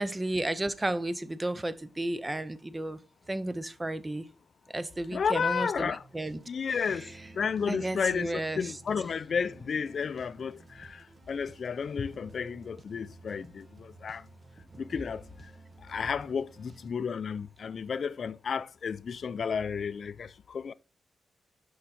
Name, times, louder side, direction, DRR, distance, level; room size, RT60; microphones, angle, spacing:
voice 1, 0.0-3.0 3.3-4.3 4.7-6.4 7.7-8.6, right 1 dB, 15° right, 0.5 m, -33 dB
voice 2, 5.1-6.0 6.5-7.1 7.3-14.3 14.8-15.2 15.8-20.7, left 6 dB, 50° left, 0.4 m, -32 dB
sound 1, 5.3-16.9, right 3 dB, 30° right, 0.9 m, -53 dB
6.5 x 5.5 x 4.0 m
wide cardioid pair, 130°, 0 cm